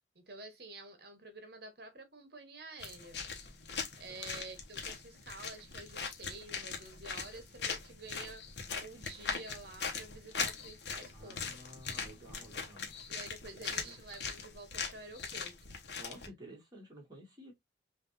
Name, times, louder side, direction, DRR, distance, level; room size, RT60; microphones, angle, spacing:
voice 1, 0.1-3.2 4.0-8.4 8.8-11.5 13.1-15.8, right 3 dB, 55° right, 1.3 m, -50 dB
sound 1, 2.8-16.3, left 5 dB, 65° left, 1.1 m, -41 dB
voice 2, 11.1-12.9 13.5-14.0 16.0-17.5, right 1 dB, 20° right, 2.3 m, -53 dB
5.6 x 2.7 x 2.7 m
head